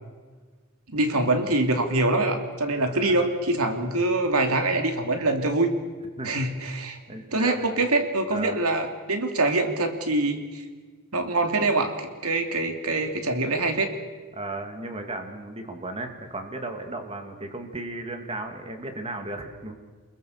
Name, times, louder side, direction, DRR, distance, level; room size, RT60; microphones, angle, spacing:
voice 1, 0.9-5.7 6.2-7.0 7.3-10.6 11.1-13.9, right 2 dB, 75° right, 5 dB, 3.1 m, -24 dB
voice 2, 2.9-3.4 6.2-6.3 7.1-7.6 8.3-8.6 14.3-19.7, right 2 dB, 25° right, 5 dB, 2.8 m, -35 dB
28.5 x 22.0 x 6.8 m, 1.4 s
head